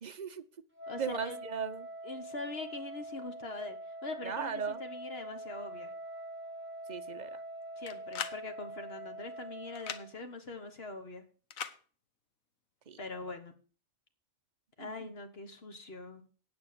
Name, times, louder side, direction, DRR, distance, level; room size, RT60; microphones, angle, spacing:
voice 1, 0.0-0.4 1.0-1.9 4.2-4.8 6.9-7.4 12.9-13.0 14.8-15.1, right 6 dB, 40° right, 10 dB, 0.7 m, -38 dB
Wind instrument woodwind instrument, 0.7-10.1, right 1 dB, 10° right, 3.4 m, -44 dB
voice 2, 0.9-1.4 2.0-5.9 7.8-11.2 13.0-13.5 14.8-16.2, left 3 dB, 50° left, 7 dB, 1.7 m, -43 dB
sound 1, 7.9-8.4 9.7-10.0 11.5-11.8, left 8 dB, 80° left, 1.3 m, -38 dB
9.0 x 8.6 x 6.8 m, 0.39 s
omnidirectional pair, 1.4 m